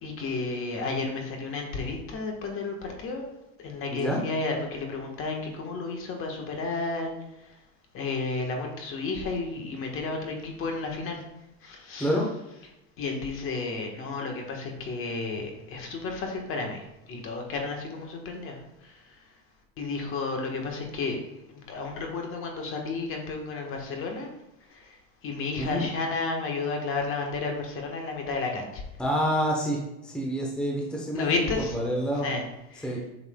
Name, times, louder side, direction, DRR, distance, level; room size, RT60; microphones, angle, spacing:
voice 1, 0.0-3.3 3.6-7.1 7.9-11.2 11.6-12.1 13.0-16.8 17.1-18.6 18.8-18.9 19.8-21.2 21.5-24.3 24.7-24.9 25.2-28.8 31.1-31.8 32.2-32.4 32.7-32.9, left 3 dB, 40° left, 2 dB, 1.3 m, -32 dB
voice 2, 3.9-4.2 12.0-12.3 25.6-25.9 29.0-32.3 32.8-33.0, equal, 5° left, -2 dB, 0.9 m, -28 dB
8.0 x 5.7 x 2.2 m, 0.94 s
supercardioid pair, 135°, 35 cm